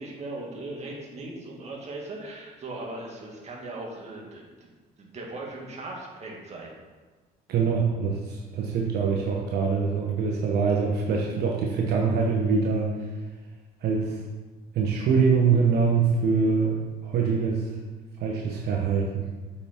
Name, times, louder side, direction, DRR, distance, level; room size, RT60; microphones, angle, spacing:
voice 1, 0.0-4.5 5.0-6.7, right 2 dB, 40° right, -2 dB, 2.1 m, -38 dB
voice 2, 7.5-12.9 13.8-14.2 14.7-17.7 18.2-19.3, right 5 dB, 70° right, -1 dB, 1.1 m, -24 dB
8.0 x 5.8 x 4.4 m, 1.3 s
cardioid pair, 110°, 17 cm